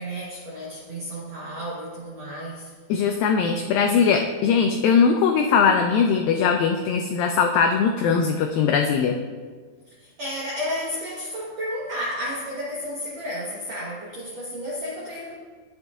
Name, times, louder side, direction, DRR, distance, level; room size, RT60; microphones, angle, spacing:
voice 1, 0.0-2.7 10.0-15.4, equal, 75° right, -6 dB, 1.5 m, -32 dB
voice 2, 2.9-9.1, left 6 dB, 90° left, 4 dB, 2.0 m, -20 dB
11.5 x 7.6 x 2.4 m, 1.5 s
omnidirectional pair, 4.6 m